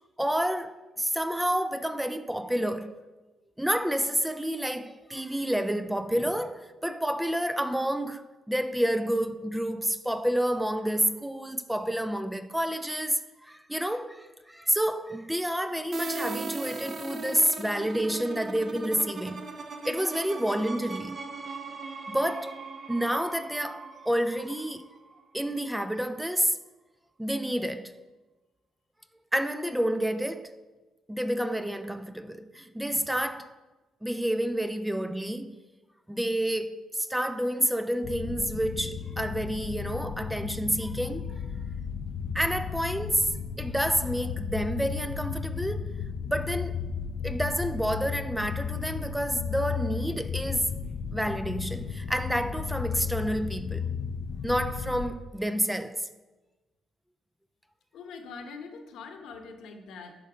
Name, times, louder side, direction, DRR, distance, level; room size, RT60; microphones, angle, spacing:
voice 1, 0.2-3.0 3.6-19.5 19.8-21.2 22.1-22.6 22.9-25.0 25.3-26.6 27.2-28.0 29.3-30.5 31.1-33.6 34.0-35.6 36.1-41.3 42.3-45.9 46.3-46.8 47.2-53.9 54.4-56.1, equal, 5° right, 0.4 m, -29 dB
sound 1, 15.9-25.5, right 3 dB, 40° right, 0.8 m, -39 dB
sound 2, 38.0-55.1, left 6 dB, 55° left, 0.5 m, -34 dB
voice 2, 57.9-60.2, left 4 dB, 80° left, 1.0 m, -43 dB
11.5 x 4.0 x 4.9 m
cardioid pair, 90°, 0 cm